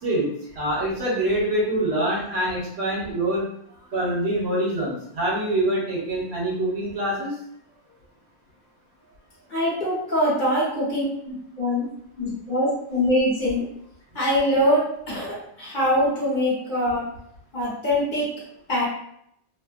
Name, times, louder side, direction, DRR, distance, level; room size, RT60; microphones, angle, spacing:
voice 1, 0.0-3.5 3.9-7.4, right 1 dB, 65° right, -5 dB, 1.1 m, -25 dB
voice 2, 9.5-11.8 12.2-13.7 14.1-17.0 17.5-18.3 18.7-18.9, equal, 45° left, -8 dB, 1.1 m, -23 dB
2.6 x 2.1 x 2.4 m, 0.71 s
omnidirectional pair, 1.2 m